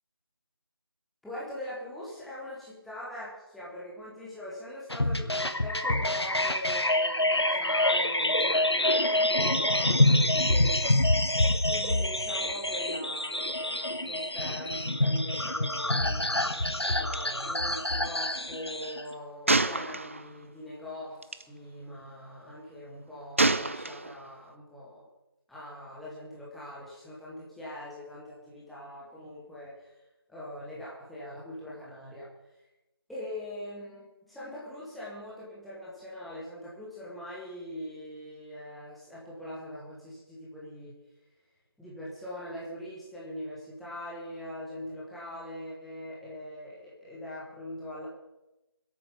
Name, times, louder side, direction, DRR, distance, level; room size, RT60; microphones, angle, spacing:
voice 1, 1.2-11.0 11.2-16.5 16.9-25.1 25.5-29.9 30.3-32.3 33.1-41.0 41.8-48.1, left 1 dB, ahead, -8 dB, 1.2 m, -42 dB
sound 1, 4.9-19.0, left 1 dB, 90° left, 1.3 m, -26 dB
Gunshot gunfire, 17.1-17.2 17.5-17.7 19.5-20.4 21.2-21.4 23.4-24.3, right 2 dB, 30° right, 0.5 m, -27 dB
22.5 x 8.6 x 5.2 m, 0.97 s
figure-of-eight pair, 165°, 13 cm